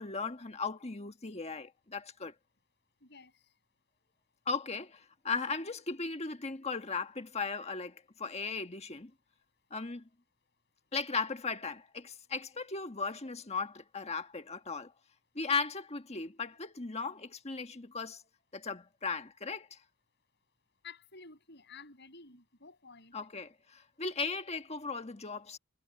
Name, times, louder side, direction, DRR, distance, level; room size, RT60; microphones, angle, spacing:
voice 1, 0.0-2.3 4.5-9.1 9.7-10.1 10.9-14.9 15.3-18.2 18.5-19.8 23.1-25.6, left 4 dB, 30° left, 1.5 m, -37 dB
voice 2, 3.0-3.4 20.8-23.1, left 5 dB, 55° left, 6.6 m, -52 dB
head